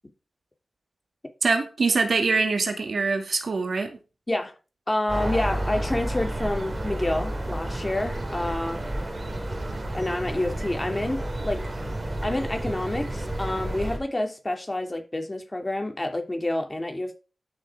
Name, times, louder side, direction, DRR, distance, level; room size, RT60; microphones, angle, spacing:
voice 1, 1.4-4.0, right 4 dB, 65° right, 2.1 m, -24 dB
voice 2, 4.9-8.8 9.9-11.7 12.2-17.1, left 1 dB, 20° left, 3.0 m, -28 dB
sound 1, 5.1-14.0, right 1 dB, 35° right, 3.5 m, -31 dB
12.0 x 6.6 x 4.8 m
cardioid pair, 60°, 0 cm